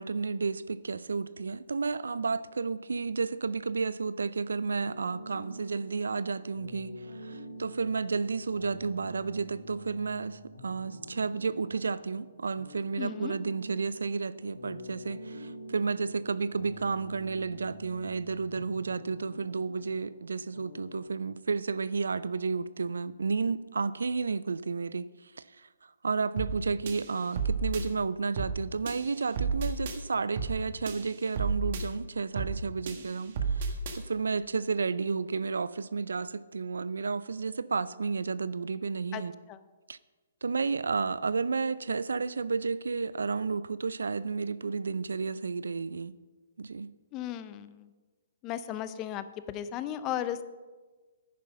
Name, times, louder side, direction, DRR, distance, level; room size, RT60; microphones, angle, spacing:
voice 1, 0.0-39.4 39.9-40.0 40.4-46.1 46.6-46.9, right 4 dB, 80° right, 0.4 m, -32 dB
sound 1, 4.8-21.1, equal, 85° left, 2.2 m, -47 dB
voice 2, 13.0-13.3 39.1-39.2 39.5-39.6 47.1-47.9 48.4-50.4, left 11 dB, 25° left, 0.7 m, -35 dB
sound 2, 26.4-26.6 26.9-27.8 28.4-28.6 28.9-30.0 30.4-30.6 30.9-31.8 32.4-32.6 32.9-34.0, right 5 dB, 50° right, 1.7 m, -32 dB
10.5 x 9.8 x 5.4 m
hypercardioid pair, 135°, 0 cm